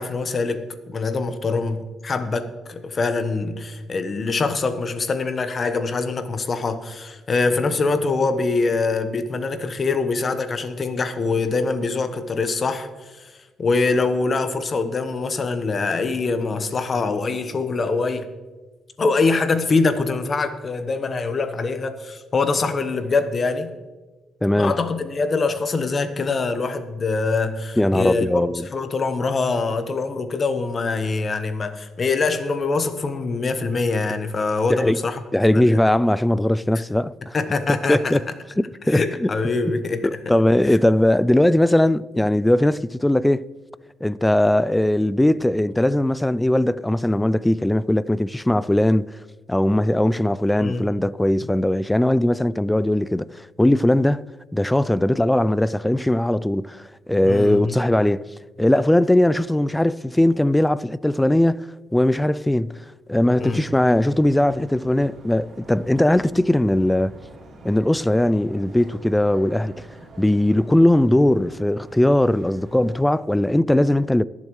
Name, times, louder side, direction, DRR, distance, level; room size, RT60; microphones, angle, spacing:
voice 1, 0.0-18.3 19.0-23.7 24.6-28.3 28.7-35.2 35.5-35.8 36.7-36.8 37.3-38.2 38.9-40.1 50.6-50.9 57.2-57.8 63.4-63.6, left 3 dB, 40° left, 1.1 m, -24 dB
voice 2, 24.4-24.8 27.8-28.7 34.7-35.0 35.3-37.4 37.7-38.2 38.6-39.3 40.0-43.5 44.0-49.1 49.5-54.2 54.5-58.2 58.6-61.7 61.9-67.1 67.6-69.9 70.2-74.2, left 1 dB, 10° left, 0.3 m, -19 dB
sound 1, 63.3-73.1, right 1 dB, 55° right, 3.5 m, -45 dB
21.5 x 7.3 x 3.1 m
cardioid pair, 90°, 0 cm